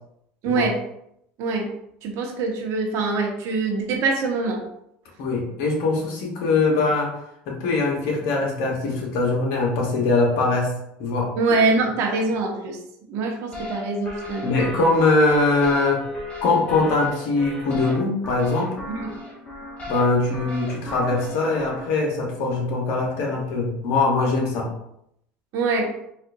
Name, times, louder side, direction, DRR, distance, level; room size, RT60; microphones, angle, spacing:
voice 1, 0.4-0.8 1.4-1.7 2.0-4.6 11.4-12.8 13.1-14.6 19.0-19.1 25.5-25.9, right 3 dB, 60° right, 1 dB, 1.0 m, -24 dB
voice 2, 5.2-7.1 7.5-10.7 11.0-11.3 14.4-16.0 16.4-18.8 19.9-24.7, left 3 dB, 70° left, -1 dB, 1.1 m, -22 dB
sound 1, 13.5-21.9, equal, 25° left, 1.0 m, -36 dB
4.1 x 2.5 x 2.6 m, 0.76 s
supercardioid pair, 100°, 5 cm